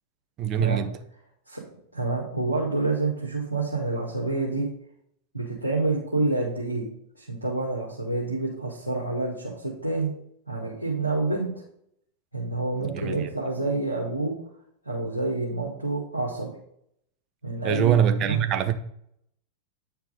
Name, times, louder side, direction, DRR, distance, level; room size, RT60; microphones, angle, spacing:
voice 1, 0.4-1.0 12.8-13.3 17.6-18.7, right 9 dB, 35° right, 0.9 m, -23 dB
voice 2, 1.9-4.7 5.3-6.9 7.2-10.1 10.5-11.6 12.3-14.3 14.9-16.5 17.4-18.4, right 3 dB, 85° right, 1.8 m, -28 dB
9.3 x 4.6 x 5.1 m
figure-of-eight pair, 90°, 0 cm